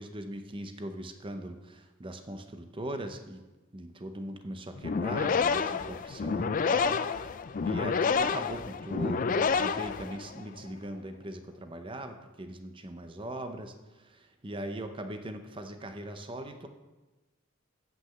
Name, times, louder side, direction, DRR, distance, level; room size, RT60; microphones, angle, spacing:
voice 1, 0.0-3.4 3.7-7.3 7.6-16.7, right 1 dB, 25° right, 7 dB, 0.6 m, -40 dB
sound 1, 4.8-10.5, left 5 dB, 40° left, 0.3 m, -29 dB
7.8 x 6.0 x 7.7 m, 1.1 s
head